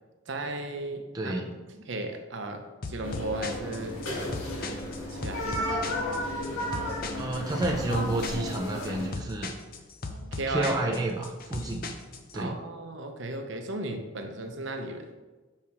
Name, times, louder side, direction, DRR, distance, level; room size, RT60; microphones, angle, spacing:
voice 1, 0.3-1.5 1.9-4.0 5.1-5.8 10.1-10.9 12.3-15.1, right 2 dB, 65° right, 5 dB, 0.8 m, -35 dB
voice 2, 1.1-1.5 7.2-9.5 10.5-11.8 12.3-12.6, right 2 dB, 20° right, 0 dB, 0.5 m, -30 dB
sound 1, 2.8-12.4, left 3 dB, 45° left, 0.5 m, -38 dB
sound 2, 3.0-9.1, left 1 dB, 85° left, 1.5 m, -33 dB
5.7 x 4.9 x 4.5 m, 1.2 s
head